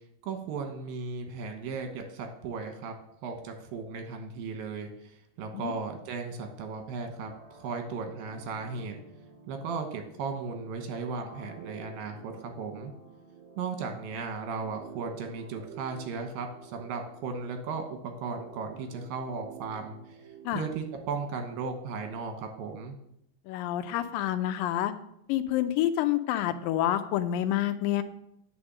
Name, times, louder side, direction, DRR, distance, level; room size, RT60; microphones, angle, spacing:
voice 1, 0.2-2.9 3.2-4.9 5.4-7.3 7.6-9.0 9.5-12.9 13.6-20.0 20.5-23.0, right 4 dB, 80° right, 5 dB, 2.9 m, -36 dB
sound 1, 7.2-21.7, right 6 dB, 35° right, 4.2 m, -50 dB
voice 2, 23.5-24.9 25.3-28.0, left 12 dB, 80° left, 10 dB, 2.3 m, -28 dB
9.5 x 5.1 x 7.3 m, 0.78 s
omnidirectional pair, 4.1 m